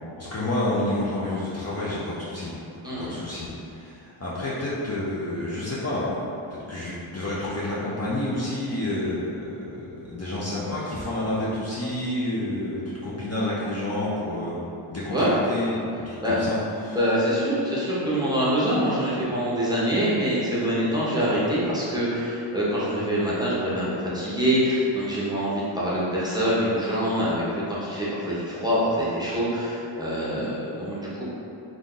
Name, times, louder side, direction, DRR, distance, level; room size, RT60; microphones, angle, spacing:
voice 1, 0.2-2.5 3.0-6.2 6.7-9.7 10.0-14.6 14.9-15.7 16.1-17.0, left 1 dB, 30° left, -9 dB, 0.6 m, -29 dB
voice 2, 2.8-3.1 15.1-15.3 16.2-16.4 16.9-23.9 24.1-27.4 27.7-31.2, equal, 10° right, -9 dB, 0.8 m, -25 dB
2.6 x 2.4 x 3.7 m, 2.7 s
cardioid pair, 55°, 48 cm